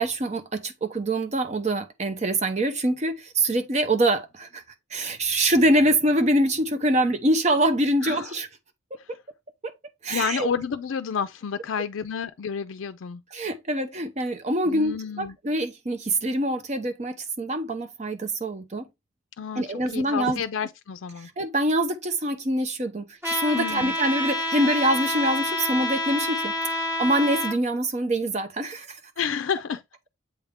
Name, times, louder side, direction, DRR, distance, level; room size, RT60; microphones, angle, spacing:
voice 1, 0.0-4.6 4.9-8.5 9.6-9.7 10.0-10.5 13.3-18.9 19.6-20.4 21.2-29.0, right 1 dB, 35° right, 0.7 m, -25 dB
voice 2, 8.0-8.3 10.1-13.2 14.6-15.4 19.4-19.6 19.9-21.3 23.5-24.0 29.2-29.8, left 7 dB, 75° left, 0.4 m, -30 dB
Trumpet, 23.2-27.5, left 1 dB, 10° right, 1.3 m, -28 dB
7.8 x 3.4 x 3.6 m
head